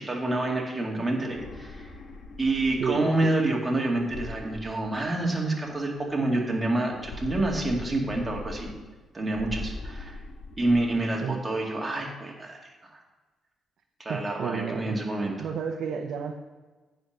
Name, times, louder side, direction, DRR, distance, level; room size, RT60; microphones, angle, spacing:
voice 1, 0.0-1.9 2.4-8.7 9.1-10.2 10.6-12.6 12.9-13.0 14.0-15.5, right 2 dB, 15° right, -1 dB, 2.3 m, -28 dB
sound 1, 1.2-3.1 4.0-5.5 6.9-9.0 9.3-11.0, left 3 dB, 55° left, 1.4 m, -41 dB
voice 2, 2.8-3.4 11.2-11.4 14.1-15.0 15.4-16.3, right 6 dB, 65° right, 4 dB, 0.7 m, -31 dB
9.1 x 5.2 x 6.7 m, 1.3 s
cardioid pair, 90°, 0 cm